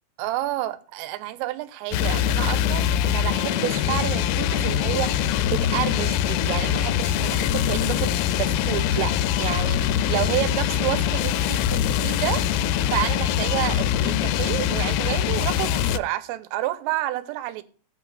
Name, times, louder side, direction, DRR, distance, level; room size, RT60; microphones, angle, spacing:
voice 1, 0.2-17.6, right 15 dB, 80° right, 3.3 m, -30 dB
sound 1, 1.9-16.0, left 10 dB, 80° left, 3.1 m, -23 dB
19.5 x 8.6 x 2.5 m
omnidirectional pair, 5.9 m